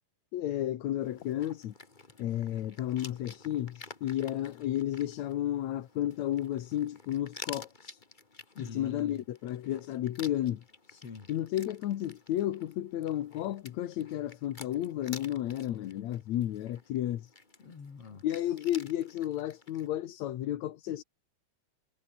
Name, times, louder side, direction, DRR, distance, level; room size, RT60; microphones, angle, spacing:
voice 1, 0.3-1.7 2.2-8.0 8.6-10.6 11.3-17.3 18.2-21.0, left 12 dB, 65° left, 2.3 m, -32 dB
sound 1, 1.0-19.9, left 3 dB, 20° left, 1.4 m, -51 dB
voice 2, 8.5-9.2 10.9-11.3 17.6-18.5, left 5 dB, 45° left, 4.4 m, -46 dB
omnidirectional pair, 3.8 m